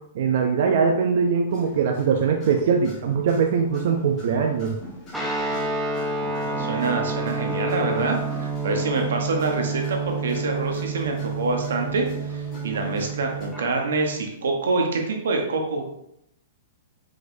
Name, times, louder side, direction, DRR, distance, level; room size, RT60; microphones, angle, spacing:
voice 1, 0.1-4.7, right 6 dB, 55° right, 3 dB, 0.5 m, -21 dB
sound 1, 1.5-13.5, equal, 20° left, 1.8 m, -44 dB
Guitar, 5.1-13.6, right 3 dB, ahead, 0.6 m, -29 dB
voice 2, 6.2-15.9, right 3 dB, 90° right, 2 dB, 1.1 m, -26 dB
4.9 x 4.0 x 2.7 m, 0.78 s
hypercardioid pair, 160°, 0 cm